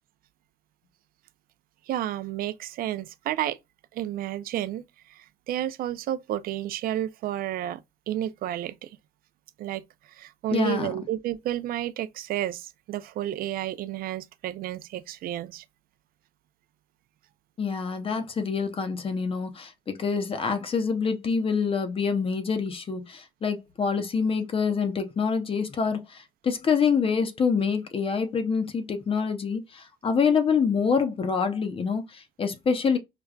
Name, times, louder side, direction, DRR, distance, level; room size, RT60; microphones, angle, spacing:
voice 1, 1.9-3.6 3.9-7.8 8.1-9.0 9.6-15.6, right 12 dB, 60° right, 0.4 m, -31 dB
voice 2, 10.5-10.9 17.6-33.0, left 5 dB, 35° left, 0.6 m, -26 dB
4.9 x 2.2 x 2.3 m
cardioid pair, 110°, 17 cm